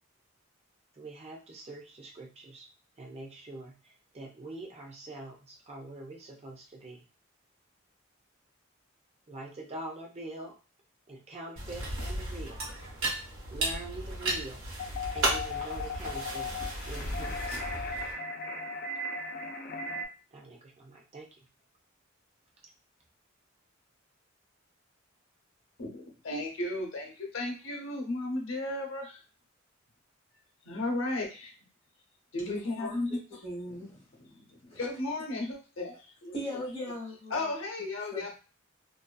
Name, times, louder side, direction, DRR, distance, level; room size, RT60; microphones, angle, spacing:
voice 1, 0.9-2.7 3.0-7.0 9.3-10.5 11.1-12.6 13.5-14.7 15.1-16.5 16.8-17.6 20.3-21.3, right 2 dB, 30° right, -1 dB, 0.6 m, -44 dB
sound 1, 11.6-18.1, right 1 dB, 75° right, 1.1 m, -34 dB
sound 2, 14.8-20.0, left 2 dB, 50° left, 0.5 m, -37 dB
voice 2, 25.8-29.2 30.6-31.5 32.3-33.4 34.2-35.9 36.2-36.6 37.3-38.3, left 2 dB, 75° left, 1 dB, 0.8 m, -34 dB
voice 3, 32.4-33.0 33.4-34.0 36.3-37.3 38.1-38.3, equal, 30° left, -4 dB, 1.1 m, -38 dB
2.6 x 2.3 x 2.3 m, 0.34 s
head